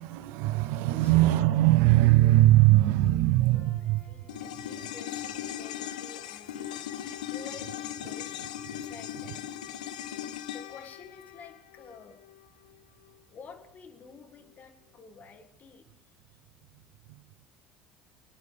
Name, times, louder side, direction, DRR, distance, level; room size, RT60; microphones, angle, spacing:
voice 1, 0.0-4.1 17.1-17.2, right 16 dB, 65° right, 0.4 m, -21 dB
sound 1, 3.5-9.4, right 1 dB, 65° left, 3.4 m, -62 dB
voice 2, 3.8-6.8 7.3-8.4 8.7-9.5 10.5-12.2 13.3-15.8, left 5 dB, 40° left, 1.9 m, -50 dB
sound 2, 4.3-12.8 13.0-13.1, left 11 dB, 80° left, 0.6 m, -39 dB
26.0 x 9.9 x 3.4 m
hypercardioid pair, 65°, 4 cm